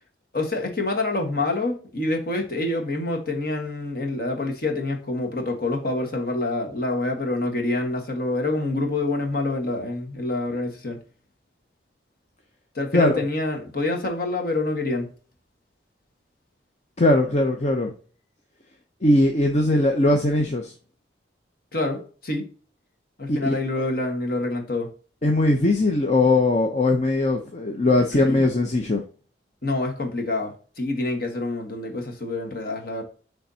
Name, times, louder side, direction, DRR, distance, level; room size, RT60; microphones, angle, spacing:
voice 1, 0.3-11.0 12.7-15.1 21.7-22.4 23.2-24.9 28.1-28.5 29.6-33.0, left 2 dB, 50° left, 3 dB, 1.4 m, -27 dB
voice 2, 17.0-17.9 19.0-20.7 23.4-23.8 25.2-29.0, left 2 dB, 35° left, 3 dB, 0.6 m, -20 dB
10.5 x 3.4 x 2.8 m, 0.39 s
head